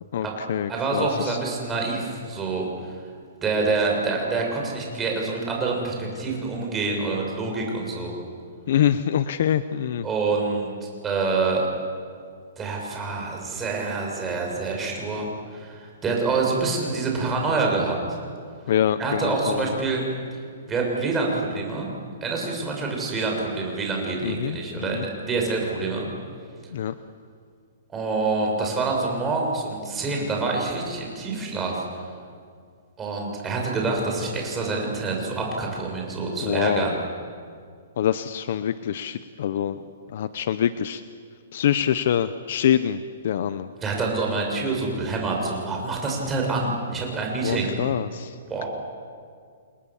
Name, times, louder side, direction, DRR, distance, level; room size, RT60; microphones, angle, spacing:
voice 1, 0.1-1.4 8.7-10.1 18.7-19.8 24.2-25.0 26.7-27.0 36.4-37.0 38.0-39.8 40.1-41.0 41.5-43.7 47.4-48.4, left 9 dB, 55° left, 12 dB, 1.0 m, -25 dB
voice 2, 0.7-2.7 3.4-8.1 10.0-11.7 12.6-18.2 19.0-20.1 20.7-21.9 22.2-26.1 27.9-31.8 33.0-36.9 43.8-47.7 48.5-48.7, right 3 dB, 15° right, 0 dB, 6.2 m, -26 dB
29.5 x 27.0 x 7.4 m, 2.2 s
hypercardioid pair, 160°, 0 cm